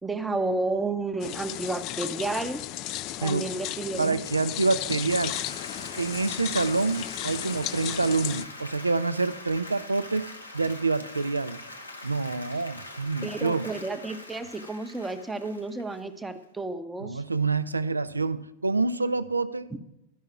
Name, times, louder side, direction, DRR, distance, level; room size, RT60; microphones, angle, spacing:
voice 1, 0.0-2.6 3.2-4.2 13.2-17.2, right 2 dB, 10° right, 0.7 m, -31 dB
sound 1, 1.2-8.4, left 14 dB, 40° left, 0.3 m, -35 dB
voice 2, 4.0-5.5 6.0-10.3 10.5-11.6 12.0-13.7 17.0-19.8, right 3 dB, 80° right, 0.4 m, -27 dB
Applause, 4.7-16.4, left 2 dB, 85° left, 1.0 m, -43 dB
12.0 x 5.6 x 5.9 m
figure-of-eight pair, 90°, 0 cm